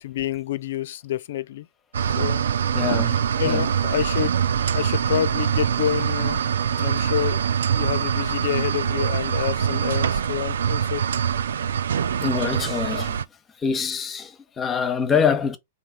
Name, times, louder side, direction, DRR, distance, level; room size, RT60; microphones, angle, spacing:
voice 1, 0.0-1.7 2.0-2.5 3.4-4.4 4.7-11.0 12.8-13.1, left 11 dB, 60° left, 0.3 m, -28 dB
sound 1, 1.9-13.2, right 8 dB, 70° right, 0.4 m, -24 dB
voice 2, 2.7-3.2 3.5-3.6 12.2-13.1 13.6-15.6, left 6 dB, 20° left, 0.8 m, -24 dB
3.9 x 2.8 x 4.7 m
hypercardioid pair, 105°, 0 cm